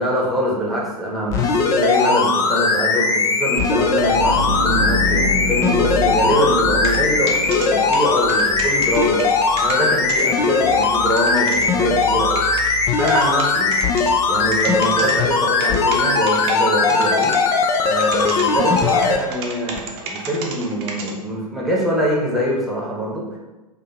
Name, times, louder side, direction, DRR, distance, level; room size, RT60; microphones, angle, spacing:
voice 1, 0.0-9.3 9.6-13.7 14.3-17.3 17.8-23.4, equal, ahead, -5 dB, 1.0 m, -23 dB
sound 1, 1.3-19.2 19.8-19.9, left 4 dB, 15° left, 0.3 m, -19 dB
sound 2, 3.9-15.3, left 1 dB, 70° right, 0.8 m, -29 dB
sound 3, 6.8-7.0 7.3-7.7 7.9-10.2 10.5-10.6 10.8-11.7 12.3-12.7 13.1-14.1 14.5-15.1 15.6-16.6 16.9-17.4 17.7-21.1, right 5 dB, 40° right, 0.8 m, -31 dB
4.5 x 2.6 x 4.1 m, 1.1 s
figure-of-eight pair, 105°, 20 cm